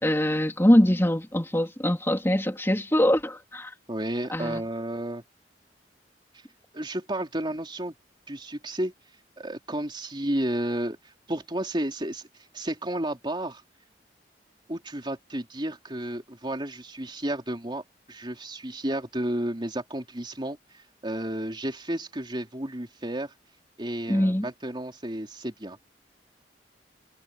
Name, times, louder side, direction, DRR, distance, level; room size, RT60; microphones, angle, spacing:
voice 1, 0.0-3.7 4.3-4.6 24.1-24.5, equal, 15° left, 2.6 m, -23 dB
voice 2, 3.9-5.2 6.7-7.9 8.3-8.9 9.4-12.3 12.5-13.6 14.7-17.8 18.1-23.3 23.8-25.8, right 1 dB, 25° right, 3.8 m, -32 dB
head